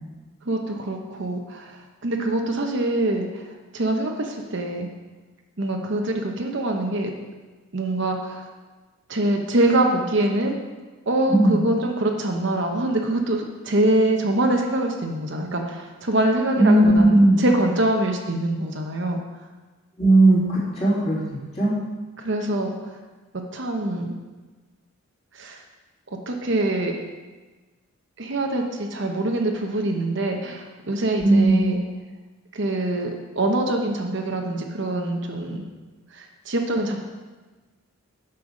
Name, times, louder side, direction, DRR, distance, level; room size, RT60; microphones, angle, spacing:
voice 1, 0.5-3.5 3.7-4.9 5.6-7.1 7.7-8.5 9.1-10.6 11.1-19.2 22.2-22.7 23.3-24.1 25.3-25.6 26.3-26.9 28.2-31.8 32.5-33.1 33.3-35.6 36.1-37.0, right 1 dB, 55° right, 2 dB, 0.9 m, -24 dB
voice 2, 11.3-11.6 16.6-17.4 20.0-21.2 21.6-21.7 31.2-31.7, right 1 dB, 30° left, -8 dB, 3.4 m, -16 dB
8.8 x 5.6 x 6.5 m, 1.3 s
head